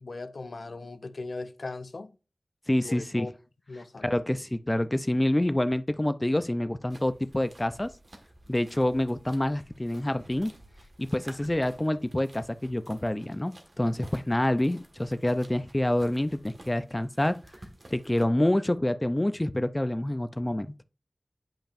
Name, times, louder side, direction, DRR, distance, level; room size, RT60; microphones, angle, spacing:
voice 1, 0.0-2.1 2.8-3.3 3.7-4.2, left 3 dB, 80° left, 0.5 m, -39 dB
voice 2, 2.7-3.3 4.0-7.9 8.5-10.5 11.0-17.4 17.9-20.7, left 1 dB, 25° left, 0.4 m, -27 dB
sound 1, 6.9-18.2, right 1 dB, 60° right, 1.5 m, -52 dB
8.8 x 5.2 x 2.5 m
wide cardioid pair, 50°, 0 cm